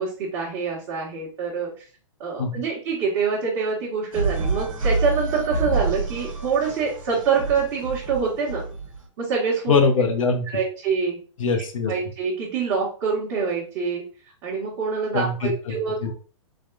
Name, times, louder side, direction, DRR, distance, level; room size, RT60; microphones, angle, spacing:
voice 1, 0.0-1.8 2.2-8.6 9.2-9.8 10.5-11.2 11.9-14.0 14.4-16.1, right 5 dB, 40° right, -5 dB, 1.0 m, -25 dB
sound 1, 4.1-9.0, right 3 dB, 80° right, 1.1 m, -27 dB
voice 2, 9.7-10.5 11.4-11.9 15.1-16.1, left 4 dB, 75° left, 4 dB, 0.7 m, -22 dB
3.4 x 2.3 x 2.3 m, 0.39 s
hypercardioid pair, 130°, 17 cm